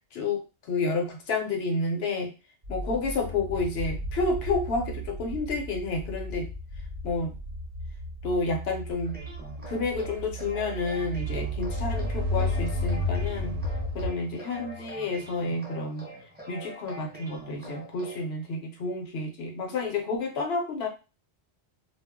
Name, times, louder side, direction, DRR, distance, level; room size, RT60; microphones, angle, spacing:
voice 1, 0.1-2.3 2.7-6.5 7.0-7.3 8.2-9.2 9.7-13.6 13.9-16.1 16.5-20.9, left 3 dB, 65° left, 3 dB, 0.9 m, -30 dB
sound 1, 2.6-14.1, equal, 45° right, 0.7 m, -34 dB
sound 2, 9.0-18.3, right 1 dB, 10° right, 0.7 m, -44 dB
sound 3, 11.5-14.9, left 3 dB, 80° right, 0.9 m, -33 dB
2.3 x 2.0 x 3.5 m, 0.31 s
omnidirectional pair, 1.2 m